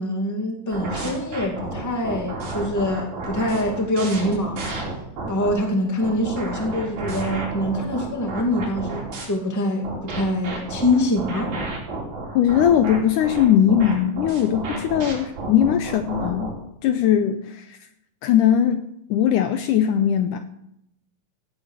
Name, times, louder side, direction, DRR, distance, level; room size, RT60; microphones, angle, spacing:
voice 1, 0.0-4.7 5.3-11.6, left 1 dB, 5° left, 2 dB, 1.6 m, -24 dB
sound 1, 0.7-5.5 6.0-9.3 9.8-16.5, right 2 dB, 85° right, 5.8 m, -31 dB
voice 2, 12.4-16.5 16.8-17.8 18.2-18.8 19.1-20.5, left 9 dB, 75° left, 9 dB, 2.0 m, -19 dB
17.0 x 8.2 x 6.6 m, 0.78 s
omnidirectional pair, 4.1 m